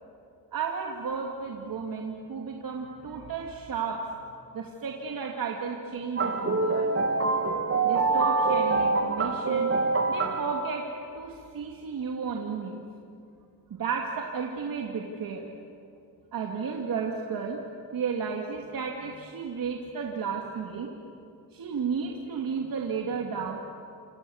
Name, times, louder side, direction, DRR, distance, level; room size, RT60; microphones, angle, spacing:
voice 1, 0.5-4.1 4.5-6.9 7.8-9.7 10.1-10.8 11.1-12.8 13.7-15.5 16.3-17.6 17.9-20.9 21.5-23.6, right 5 dB, 55° right, 0 dB, 2.6 m, -33 dB
sound 1, 6.2-10.7, right 3 dB, 35° right, 2.6 m, -25 dB
28.0 x 28.0 x 7.3 m, 2.5 s
cardioid pair, 110°, 41 cm